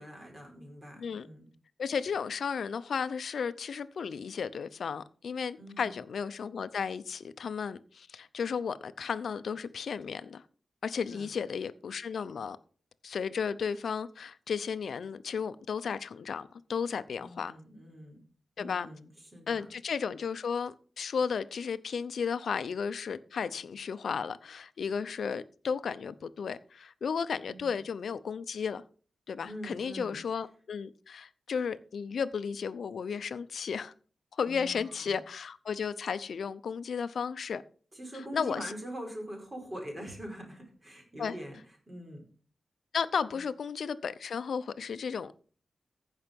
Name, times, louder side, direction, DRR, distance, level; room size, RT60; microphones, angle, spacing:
voice 1, 0.0-1.5 5.6-6.0 11.1-11.3 17.2-18.2 18.6-19.7 27.4-27.8 29.5-30.2 34.4-35.2 37.9-41.6 41.9-42.2 43.3-43.4, equal, 25° right, 4.8 m, -44 dB
voice 2, 1.8-10.4 10.8-12.6 13.0-17.5 18.6-18.9 19.5-28.8 29.3-33.9 34.3-37.6 38.3-38.7 41.2-41.3 42.9-45.3, left 6 dB, 80° left, 0.6 m, -34 dB
15.0 x 5.7 x 5.3 m
wide cardioid pair, 95°, 0 cm